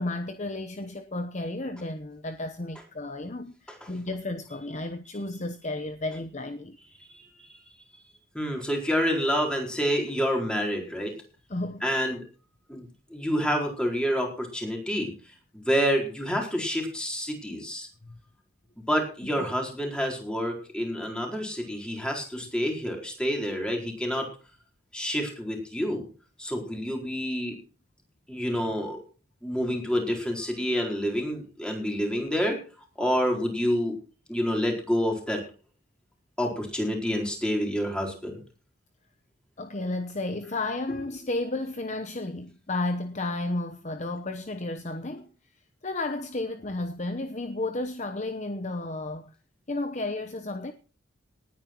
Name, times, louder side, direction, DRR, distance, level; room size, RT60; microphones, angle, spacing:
voice 1, 0.0-6.8 11.5-11.8 18.0-18.2 39.6-45.3 45.8-49.3 49.7-50.7, left 2 dB, 35° left, 0.9 m, -32 dB
voice 2, 7.0-7.6 8.3-11.1 11.8-12.2 12.7-12.9 13.1-15.1 15.5-17.9 18.8-24.3 24.9-26.0 26.4-27.6 28.3-29.0 29.4-32.6 33.0-33.9 34.3-35.5 36.4-38.4, equal, 5° left, 4.3 m, -28 dB
19.5 x 9.4 x 4.5 m
head